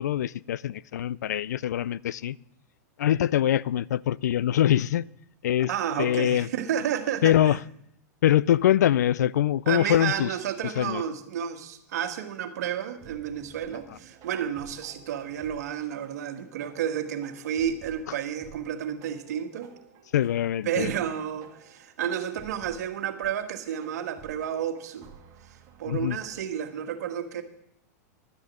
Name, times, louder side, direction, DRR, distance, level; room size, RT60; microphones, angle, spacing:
voice 1, 0.0-2.4 3.0-5.0 5.4-5.7 6.0-6.5 7.2-7.6 8.2-10.3 10.8-11.0 20.1-20.9 25.9-26.2, left 11 dB, 85° left, 0.4 m, -23 dB
voice 2, 5.7-7.6 9.6-19.7 20.6-25.1 25.4-27.4, right 9 dB, 75° right, 1.6 m, -31 dB
sound 1, 13.0-26.4, right 7 dB, 40° right, 2.1 m, -53 dB
12.0 x 6.5 x 8.6 m
hypercardioid pair, 125°, 9 cm